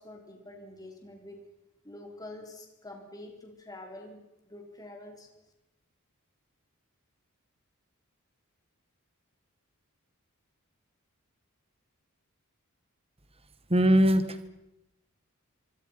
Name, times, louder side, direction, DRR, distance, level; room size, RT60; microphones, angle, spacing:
voice 1, 0.0-1.4 1.8-4.2 4.4-5.3, left 1 dB, 15° left, 2 dB, 4.4 m, -46 dB
voice 2, 13.7-14.5, equal, 25° right, 11 dB, 1.6 m, -22 dB
25.0 x 25.0 x 5.9 m, 0.93 s
head